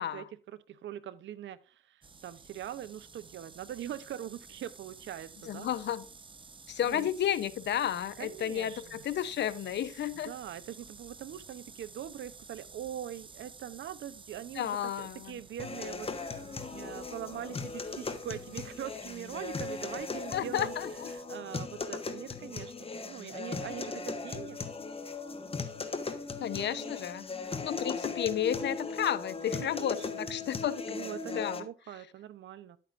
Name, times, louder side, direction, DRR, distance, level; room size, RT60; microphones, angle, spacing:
voice 1, 0.0-5.7 6.8-7.1 8.2-9.0 10.2-16.4 16.7-20.7 21.1-24.6 26.6-26.9 29.6-30.2 30.9-32.8, right 10 dB, 70° right, 0.9 m, -42 dB
sound 1, 2.0-21.2, right 4 dB, 25° right, 1.0 m, -53 dB
voice 2, 5.5-6.0 6.7-10.3 14.6-15.4 20.3-21.1 26.4-27.2 27.6-30.8 31.3-31.7, left 10 dB, 60° left, 0.9 m, -32 dB
sound 2, 15.6-31.6, left 4 dB, 30° left, 1.4 m, -38 dB
11.0 x 8.7 x 2.6 m
cardioid pair, 90°, 20 cm